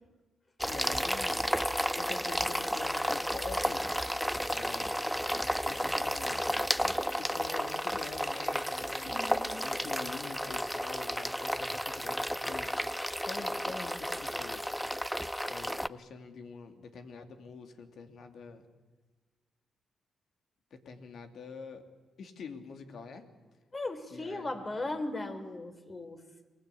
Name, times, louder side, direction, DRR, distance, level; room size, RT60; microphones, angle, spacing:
voice 1, 0.6-1.4 2.0-3.8 4.5-6.5 7.2-9.1 9.6-12.7 13.3-14.7 15.5-18.6 20.7-21.8 22.2-23.3 24.1-24.6, left 5 dB, 70° left, 6 dB, 2.9 m, -46 dB
sound 1, 0.6-15.9, equal, ahead, 0.7 m, -32 dB
voice 2, 9.1-9.6 23.7-26.2, left 2 dB, 30° left, 8 dB, 3.9 m, -37 dB
28.0 x 21.5 x 8.5 m, 1.3 s
cardioid pair, 70°, 0 cm